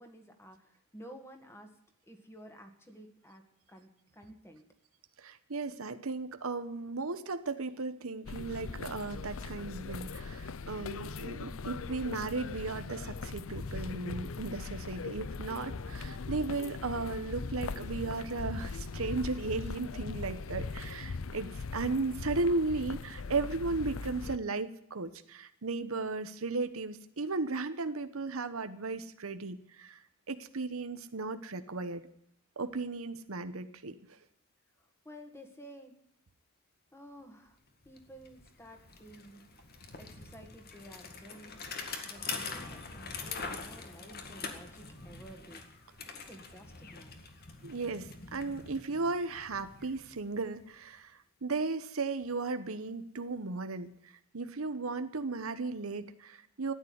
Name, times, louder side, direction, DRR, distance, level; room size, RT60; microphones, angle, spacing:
voice 1, 0.0-1.7 2.1-3.4 3.7-4.6 34.8-35.9 36.9-37.6 37.8-39.4 40.0-41.6 42.0-45.6 46.2-47.2, equal, 10° left, 5 dB, 2.1 m, -52 dB
voice 2, 5.2-30.0 30.3-32.1 32.6-34.2 47.6-53.9 54.3-56.7, right 3 dB, 85° right, 10 dB, 1.1 m, -35 dB
sound 1, 8.3-24.4, left 4 dB, 70° left, 0.6 m, -40 dB
Bicycle, 37.5-37.6 37.8-50.7, left 4 dB, 50° left, 2.0 m, -44 dB
14.0 x 9.7 x 9.7 m, 0.72 s
head